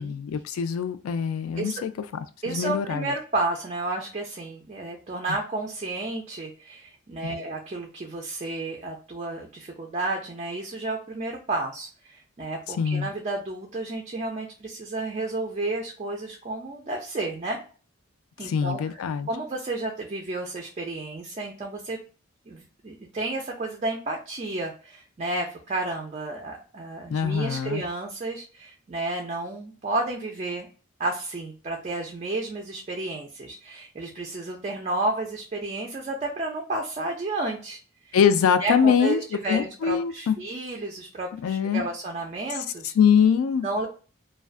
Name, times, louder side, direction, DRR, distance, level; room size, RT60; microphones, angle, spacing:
voice 1, 0.0-1.9 2.5-3.1 7.2-7.4 12.8-13.1 18.4-19.3 27.1-27.8 38.1-39.2 39.5-40.3 41.4-41.8 42.5-42.6 43.0-43.7, left 7 dB, 90° left, 11 dB, 0.3 m, -23 dB
voice 2, 2.4-17.6 18.4-19.0 19.3-22.0 22.5-30.7 31.0-37.8 38.1-38.2 38.6-42.9 43.6-43.9, right 2 dB, 30° right, 1 dB, 0.4 m, -31 dB
2.3 x 2.2 x 2.4 m, 0.37 s
head